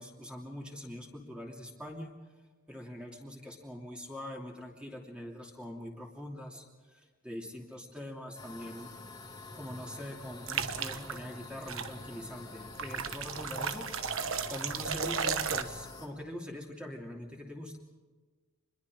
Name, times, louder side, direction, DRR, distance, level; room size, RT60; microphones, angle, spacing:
voice 1, 0.0-2.1 2.7-6.6 6.9-8.9 9.5-13.9 14.5-17.8, left 1 dB, 5° right, 0 dB, 2.8 m, -43 dB
sound 1, 8.3-16.1, left 3 dB, 20° left, 2.6 m, -47 dB
sound 2, 10.5-11.2 11.7-11.9 12.8-15.6, right 6 dB, 85° right, 1.2 m, -34 dB
26.0 x 21.5 x 5.0 m, 1.4 s
head